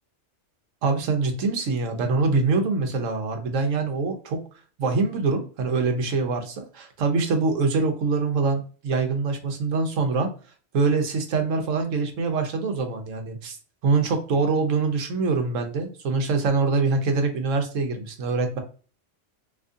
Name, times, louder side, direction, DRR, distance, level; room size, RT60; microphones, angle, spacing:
voice 1, 0.8-4.4 4.8-10.3 10.7-13.6 13.8-18.6, right 4 dB, 90° right, 5 dB, 1.2 m, -24 dB
3.6 x 2.9 x 2.6 m, 0.38 s
omnidirectional pair, 1.3 m